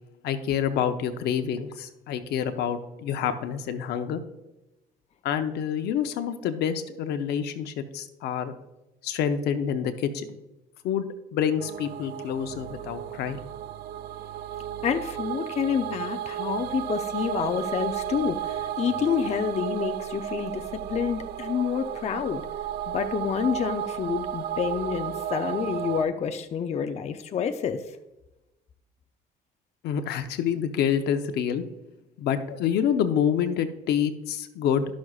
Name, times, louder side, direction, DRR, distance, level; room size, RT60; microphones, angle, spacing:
voice 1, 0.2-4.2 5.2-8.5 9.0-10.4 10.8-13.4 29.8-31.6 32.2-34.8, left 8 dB, 75° left, 8 dB, 0.7 m, -27 dB
sound 1, 11.6-26.0, right 11 dB, 70° right, 0.4 m, -33 dB
voice 2, 14.8-22.4 22.9-27.8, left 7 dB, 40° left, 7 dB, 0.6 m, -28 dB
12.0 x 6.2 x 2.4 m, 0.97 s
cardioid pair, 110°, 17 cm